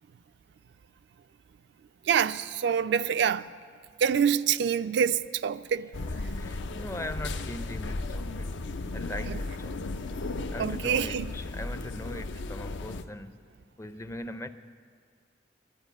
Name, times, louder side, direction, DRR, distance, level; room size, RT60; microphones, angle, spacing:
voice 1, 2.1-3.5 4.0-5.9 9.3-9.4 10.3-11.3, right 7 dB, 65° right, 0.3 m, -26 dB
sound 1, 5.9-13.0, left 2 dB, 75° left, 0.5 m, -35 dB
voice 2, 6.3-8.5 8.9-10.0 10.5-13.4 13.8-14.5, left 1 dB, 15° left, 0.4 m, -40 dB
11.5 x 9.5 x 9.8 m
head